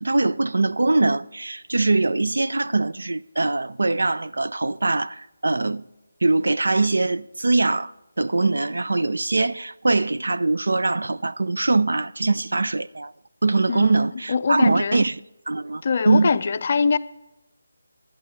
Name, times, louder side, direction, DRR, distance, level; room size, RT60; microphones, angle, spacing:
voice 1, 0.0-5.9 6.2-13.1 13.4-15.2 15.5-16.4, right 3 dB, 85° right, 0.5 m, -22 dB
voice 2, 14.3-15.0 15.8-17.0, left 5 dB, 35° left, 0.5 m, -22 dB
11.0 x 11.0 x 4.3 m
figure-of-eight pair, 170°, 0 cm